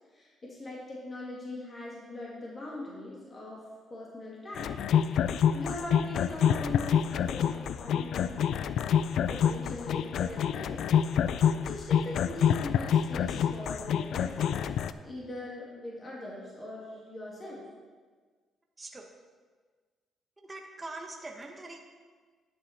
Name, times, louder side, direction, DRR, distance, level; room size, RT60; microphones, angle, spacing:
voice 1, 0.1-3.6 3.9-4.7 5.5-8.3 9.3-10.9 11.6-14.6 15.0-17.6, left 1 dB, 30° left, -5 dB, 2.6 m, -40 dB
sound 1, 4.6-14.9, left 8 dB, 75° left, 0.4 m, -27 dB
voice 2, 18.8-19.1 20.4-21.8, right 2 dB, 20° right, 2 dB, 1.2 m, -42 dB
11.0 x 7.6 x 4.5 m, 1.5 s
cardioid pair, 90°, 0 cm